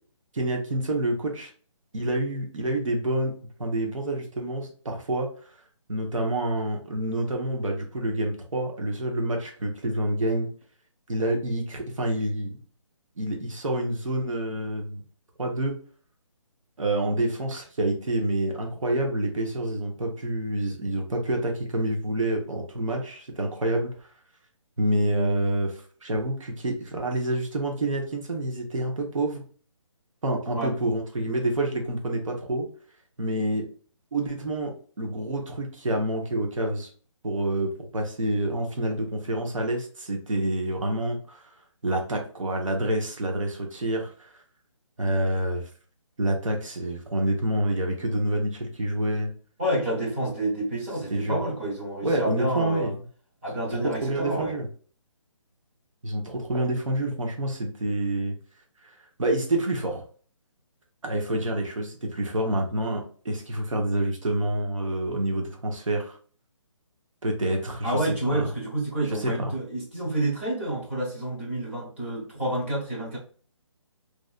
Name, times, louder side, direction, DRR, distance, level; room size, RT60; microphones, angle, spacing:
voice 1, 0.3-1.5 1.9-3.3 3.6-5.3 5.9-10.5 11.1-12.6 13.2-15.0 15.4-15.7 16.8-23.9 24.8-29.4 30.2-32.7 33.2-33.7 34.1-36.9 37.2-41.4 41.8-44.3 45.0-45.6 46.2-49.3 51.1-51.4 52.0-53.0 53.7-54.7 56.0-58.3 58.8-58.9 59.2-60.0 61.0-66.2 67.2-68.5 69.1-69.5, right 1 dB, 80° right, 2 dB, 1.0 m, -27 dB
voice 2, 49.6-52.9 53.4-54.5 67.8-73.2, right 1 dB, 25° right, -5 dB, 1.1 m, -29 dB
3.2 x 2.6 x 2.4 m, 0.43 s
hypercardioid pair, 175°, 17 cm